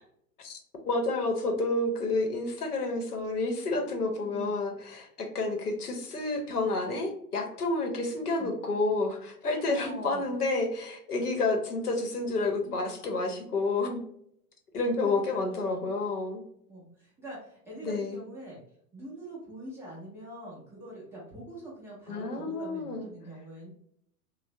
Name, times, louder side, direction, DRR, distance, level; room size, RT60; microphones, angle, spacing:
voice 1, 0.8-14.0 14.7-16.4 17.8-18.2 22.1-23.1, left 2 dB, 75° left, 3 dB, 0.8 m, -30 dB
voice 2, 4.3-4.6 8.4-8.5 9.6-10.3 15.0-16.0 16.7-18.6 18.9-23.7, right 1 dB, 5° right, -7 dB, 0.5 m, -44 dB
3.2 x 2.1 x 2.7 m, 0.71 s
figure-of-eight pair, 100°, 46 cm